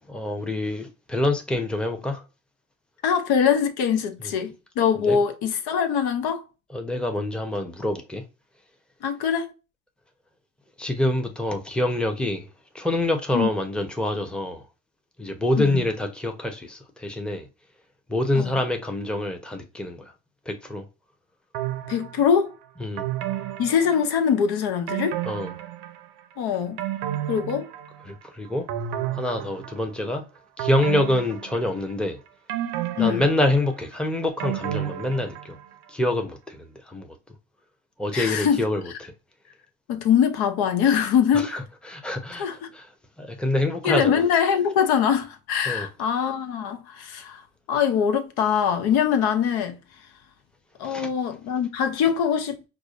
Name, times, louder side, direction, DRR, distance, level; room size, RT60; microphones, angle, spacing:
voice 1, 0.1-2.2 5.0-5.2 6.7-8.2 10.8-12.5 12.7-14.6 15.2-17.5 18.1-20.1 20.5-20.8 22.8-23.0 25.2-25.5 28.1-28.7 29.1-30.2 30.6-32.2 33.0-35.6 35.9-37.1 38.0-39.1 41.3-41.6 41.9-42.5 42.7-42.9 43.2-44.2 45.7-45.9 50.8-51.1, left 1 dB, ahead, 0.7 m, -26 dB
voice 2, 3.0-6.4 9.0-9.5 13.3-13.5 15.6-15.8 18.3-18.5 21.9-22.5 23.6-25.2 26.4-26.8 27.3-27.7 33.0-33.3 38.1-38.6 39.9-41.6 42.4-42.7 43.8-47.4 47.7-49.8 50.8-52.6, left 7 dB, 70° left, 0.7 m, -23 dB
sound 1, 21.5-22.4 23.0-24.4 24.9-26.2 26.5-28.2 28.7-30.0 30.6-32.0 32.5-35.7 36.1-36.2, right 12 dB, 70° right, 0.6 m, -32 dB
4.8 x 2.2 x 2.4 m
supercardioid pair, 70°, 40 cm